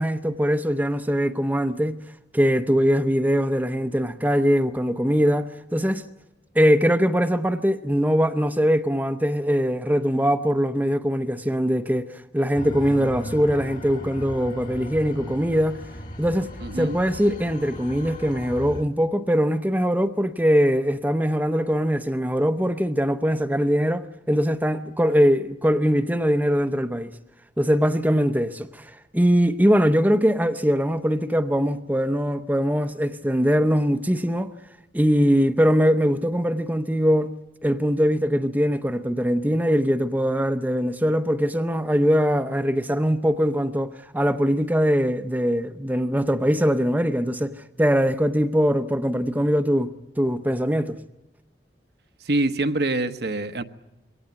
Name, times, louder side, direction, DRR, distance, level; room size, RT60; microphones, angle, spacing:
voice 1, 0.0-2.0 2.3-6.0 6.5-15.8 16.2-16.5 16.8-27.1 27.6-34.5 34.9-37.3 37.6-51.0, equal, 10° right, 0.7 m, -22 dB
sound 1, 12.5-18.8, equal, 45° left, 2.2 m, -37 dB
voice 2, 16.6-17.0 52.2-53.6, right 2 dB, 65° right, 1.1 m, -25 dB
23.0 x 18.0 x 9.5 m
head